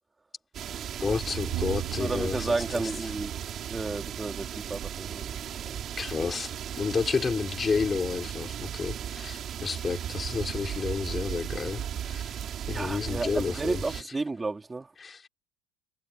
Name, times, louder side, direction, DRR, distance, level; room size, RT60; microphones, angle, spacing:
sound 1, 0.5-14.0, right 9 dB, 45° right, 6.3 m, -36 dB
voice 1, 1.0-2.5 6.0-6.5 6.8-12.3 12.7-13.8 15.0-15.2, left 5 dB, 25° left, 3.9 m, -30 dB
Bowed string instrument, 1.5-7.7, right 18 dB, 70° right, 4.8 m, -41 dB
voice 2, 2.0-3.3 3.7-5.8 12.7-14.9, right 3 dB, 15° right, 4.2 m, -32 dB
supercardioid pair, 95°, 0 cm